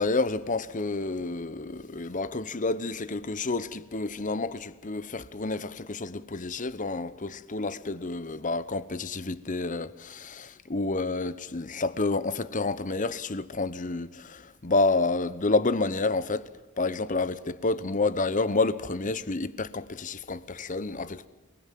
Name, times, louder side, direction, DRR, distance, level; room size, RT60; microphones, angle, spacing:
voice 1, 0.0-16.4 16.8-21.3, left 3 dB, 35° left, 1.0 m, -29 dB
28.0 x 20.5 x 7.6 m
head